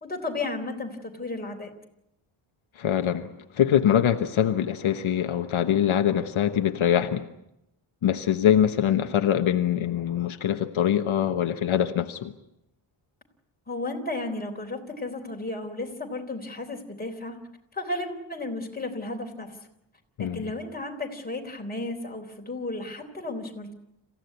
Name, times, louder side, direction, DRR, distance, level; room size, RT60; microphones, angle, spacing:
voice 1, 0.0-1.7 13.7-17.4 17.7-19.6 20.2-23.7, left 2 dB, 20° left, 3.7 m, -33 dB
voice 2, 2.8-7.3 8.0-12.3 20.2-20.5, left 9 dB, 75° left, 1.3 m, -23 dB
27.0 x 16.0 x 9.6 m
wide cardioid pair, 145°, 49 cm